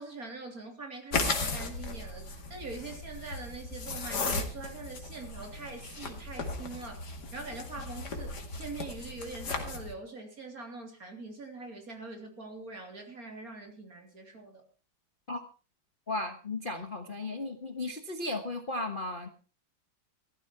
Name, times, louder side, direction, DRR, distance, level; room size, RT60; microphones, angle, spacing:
voice 1, 0.0-14.6, right 3 dB, 45° right, 3 dB, 3.7 m, -43 dB
sound 1, 1.1-9.9, left 3 dB, 55° left, 2.7 m, -36 dB
voice 2, 16.1-19.3, left 2 dB, 30° left, 6 dB, 1.2 m, -35 dB
15.5 x 14.0 x 4.5 m, 0.36 s
omnidirectional pair, 2.2 m